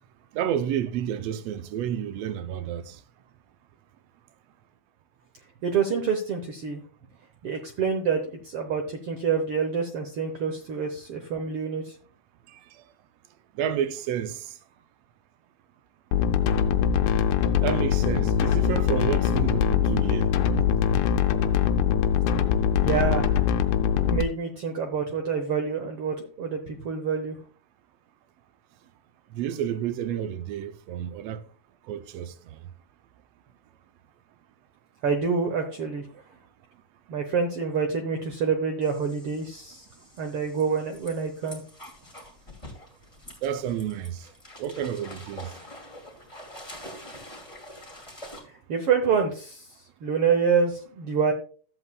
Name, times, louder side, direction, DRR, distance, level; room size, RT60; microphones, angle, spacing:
voice 1, 0.3-3.0 12.5-12.8 13.5-14.6 17.6-20.7 20.9-21.1 29.3-31.4 31.9-32.6 43.4-44.3 44.6-45.5, right 9 dB, 80° right, 1.4 m, -30 dB
voice 2, 5.6-6.8 7.4-11.9 22.8-23.3 23.9-27.4 35.0-36.0 37.1-39.8 40.2-41.6 48.7-49.6 50.0-51.3, right 6 dB, 65° right, 1.5 m, -27 dB
sound 1, 16.1-24.2, left 8 dB, 80° left, 2.1 m, -22 dB
sound 2, 38.8-48.4, left 1 dB, 15° left, 2.0 m, -46 dB
13.5 x 7.9 x 2.3 m
omnidirectional pair, 3.5 m